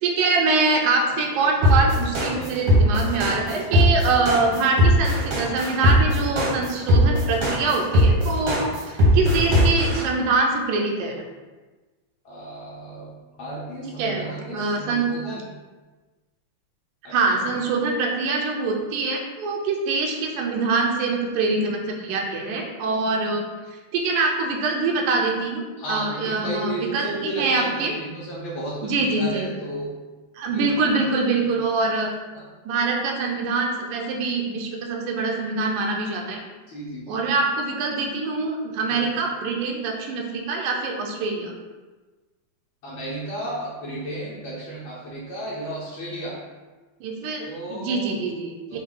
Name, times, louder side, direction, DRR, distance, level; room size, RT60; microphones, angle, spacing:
voice 1, 0.0-11.2 14.0-14.2 14.5-15.1 17.1-23.5 23.9-28.0 28.8-29.5 30.4-32.1 32.7-36.4 37.1-41.5 47.0-48.8, right 3 dB, 85° right, 0 dB, 2.1 m, -24 dB
sound 1, 1.6-10.0, equal, 60° right, 1.2 m, -18 dB
voice 2, 2.3-2.7 12.2-13.1 13.4-15.5 17.0-17.6 25.8-29.9 30.5-30.8 31.4-31.5 32.3-32.4 36.7-37.2 38.9-39.0 42.8-46.4 47.4-48.2 48.7-48.8, right 1 dB, 80° left, -7 dB, 1.1 m, -33 dB
6.0 x 2.3 x 3.8 m, 1.3 s
omnidirectional pair, 3.5 m